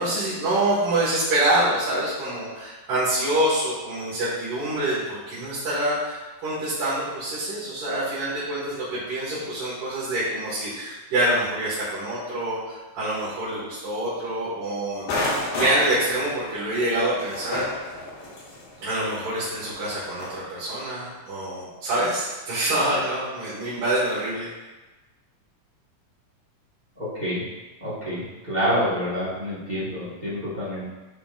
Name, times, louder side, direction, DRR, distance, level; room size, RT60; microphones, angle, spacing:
voice 1, 0.0-17.9 18.8-24.5, right 1 dB, 80° right, -11 dB, 3.3 m, -26 dB
sound 1, 15.1-20.4, left 2 dB, 85° left, 3.3 m, -31 dB
voice 2, 27.0-27.4 27.8-30.9, equal, 45° right, -9 dB, 0.5 m, -27 dB
11.0 x 3.7 x 2.5 m, 1.2 s
omnidirectional pair, 3.7 m